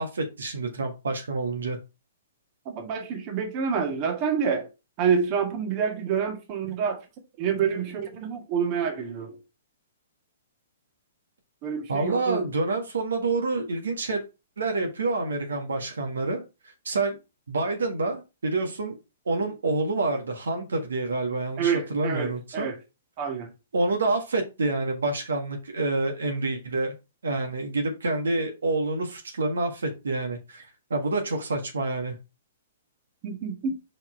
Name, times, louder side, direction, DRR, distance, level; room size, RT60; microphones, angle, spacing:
voice 1, 0.0-1.8 11.9-14.2 14.6-16.4 16.8-17.2 17.5-19.0 19.2-22.7 23.7-26.9 27.2-32.1, right 3 dB, 75° right, 1.6 m, -27 dB
voice 2, 2.7-4.7 5.0-7.0 7.4-9.4 11.6-12.5 21.6-22.8 23.2-23.5 33.2-33.8, right 6 dB, 35° right, 1.7 m, -27 dB
5.3 x 4.5 x 4.5 m
figure-of-eight pair, 120°, 0 cm